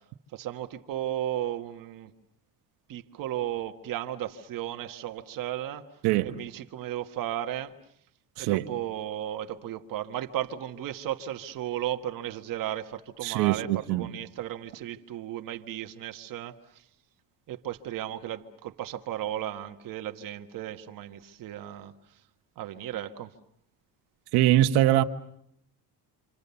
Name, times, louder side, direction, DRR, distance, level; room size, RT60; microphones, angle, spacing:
voice 1, 0.3-2.1 2.9-5.8 6.2-7.7 8.4-13.7 14.0-16.5 17.5-21.9 22.6-23.3, right 12 dB, 55° right, 6 dB, 1.5 m, -34 dB
voice 2, 6.0-6.4 8.4-8.7 13.2-14.1 24.3-25.0, right 14 dB, 75° right, 7 dB, 1.5 m, -23 dB
27.5 x 27.0 x 7.0 m, 0.72 s
cardioid pair, 135°, 39 cm